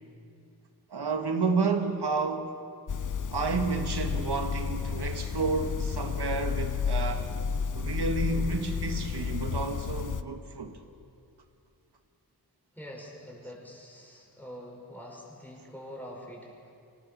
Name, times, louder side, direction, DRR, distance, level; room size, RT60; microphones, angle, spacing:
voice 1, 0.9-2.6 3.3-7.3 7.7-10.7, right 4 dB, 90° right, 1.7 m, -30 dB
sound 1, 2.9-10.2, left 6 dB, 50° left, 0.7 m, -31 dB
voice 2, 12.7-16.7, equal, 5° left, 5.5 m, -45 dB
25.5 x 18.5 x 7.0 m
wide cardioid pair, 95°, 39 cm